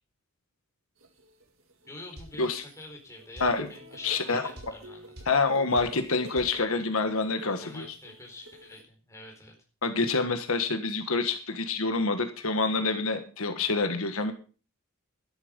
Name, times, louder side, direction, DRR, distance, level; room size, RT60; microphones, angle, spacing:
sound 1, 1.0-2.8 3.2-8.8, equal, 70° right, 2.3 m, -49 dB
voice 1, 1.9-5.1 7.6-9.5, left 2 dB, 15° left, 1 dB, 4.5 m, -46 dB
sound 2, 2.2-2.4 3.4-3.6 4.6-4.8 5.2-5.4 5.8-6.0 6.4-6.6, right 1 dB, 50° right, 5.9 m, -44 dB
voice 2, 4.0-4.4 5.3-7.9 9.8-14.3, left 3 dB, 75° left, 7 dB, 1.5 m, -27 dB
12.5 x 11.5 x 5.3 m, 0.37 s
head